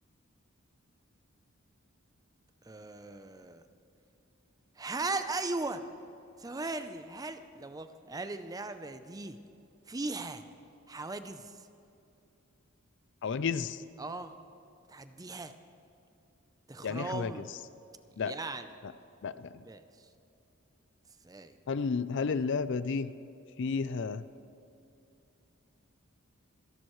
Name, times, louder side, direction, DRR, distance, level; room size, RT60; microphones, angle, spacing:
voice 1, 2.6-3.6 4.8-5.8 6.4-9.4 9.9-10.5 10.9-11.7 14.0-14.3 14.9-15.6 16.7-17.5 18.2-18.7 19.6-20.1 21.2-21.5, right 3 dB, 15° right, 10 dB, 0.6 m, -38 dB
voice 2, 13.2-13.8 16.8-17.3 18.2-18.3 19.2-19.3 21.7-23.1 23.6-24.2, left 5 dB, 60° left, 14 dB, 0.5 m, -31 dB
26.5 x 11.0 x 3.2 m, 2.7 s
head